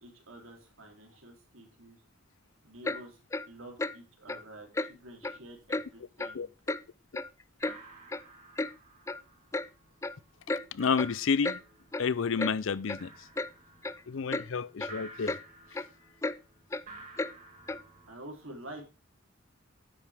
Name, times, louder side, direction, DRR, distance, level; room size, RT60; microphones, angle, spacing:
voice 1, 0.0-2.0 2.6-3.2 3.5-6.5 18.1-18.8, right 1 dB, 80° right, 3.3 m, -48 dB
Clock, 2.8-3.0 3.3-3.5 3.8-4.0 4.3-4.4 4.7-4.9 5.2-5.4 5.7-5.8 6.2-6.3 6.7-6.8 7.1-7.8 8.1-8.2 8.6-8.7 9.1-9.2 9.5-9.7 10.0-10.2 10.5-10.6 11.0-11.1 11.4-11.6 11.9-12.0 12.4-12.5 12.9-13.0 13.4-13.5 13.8-14.0 14.3-14.5 14.8-14.9 15.3-15.4 15.7-15.9 16.2-16.4 16.7-16.8 17.2-17.3 17.7-17.8, left 2 dB, 15° left, 0.4 m, -33 dB
sound 1, 5.0-5.1 5.3-5.9 6.2-6.8 7.1-7.2 7.5-18.1, right 2 dB, 40° right, 4.1 m, -53 dB
voice 2, 10.7-11.6 12.0-13.3 14.1-15.4, left 5 dB, 70° left, 0.5 m, -30 dB
10.5 x 8.2 x 3.5 m
head